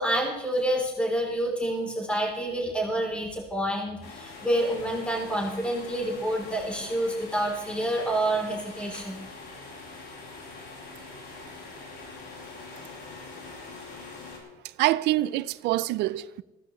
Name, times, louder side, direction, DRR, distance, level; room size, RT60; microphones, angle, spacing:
voice 1, 0.0-9.2, right 1 dB, 5° left, 3.5 m, -28 dB
sound 1, 4.0-14.4, left 3 dB, 90° left, 6.3 m, -43 dB
voice 2, 14.8-16.4, right 16 dB, 90° right, 0.6 m, -25 dB
19.5 x 16.0 x 3.2 m
cardioid pair, 110°, 17 cm